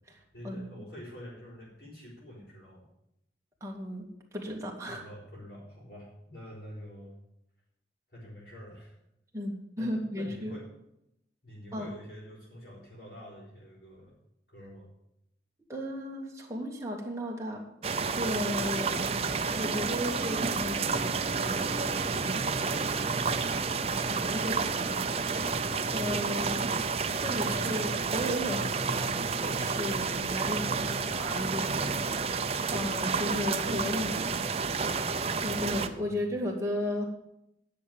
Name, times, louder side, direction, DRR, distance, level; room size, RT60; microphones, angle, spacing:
voice 1, 0.3-2.9 4.9-7.2 8.1-9.0 9.8-10.7 11.4-14.2 14.5-14.9 26.3-26.6 27.5-27.8 28.6-28.8 31.7-32.0 32.6-32.9 36.0-36.2, equal, 60° left, -9 dB, 5.3 m, -47 dB
voice 2, 3.6-4.0 4.3-5.1 9.3-10.6 11.7-11.9 15.7-17.7 18.2-19.1 19.6-22.9 24.1-25.6 25.9-26.8 27.2-31.8 32.7-34.4 35.4-37.1, left 1 dB, 15° right, -1 dB, 2.1 m, -35 dB
sound 1, 17.8-35.9, right 4 dB, 35° right, 0.6 m, -30 dB
10.0 x 6.7 x 8.7 m, 0.81 s
head